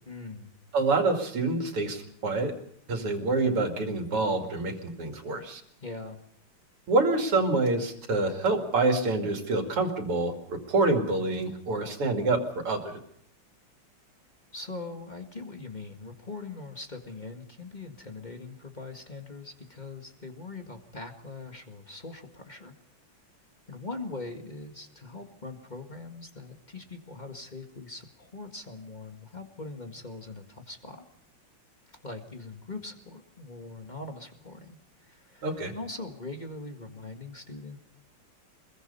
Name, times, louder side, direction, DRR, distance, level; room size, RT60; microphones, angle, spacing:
voice 1, 0.1-0.5 5.8-6.2 14.5-22.7 23.7-31.0 32.0-35.5 35.7-37.8, left 3 dB, 20° left, 4 dB, 1.8 m, -41 dB
voice 2, 0.7-2.5 2.9-5.6 6.9-13.0 35.4-35.7, right 3 dB, 85° right, 4 dB, 3.4 m, -27 dB
25.0 x 22.0 x 5.5 m, 0.70 s
omnidirectional pair, 2.4 m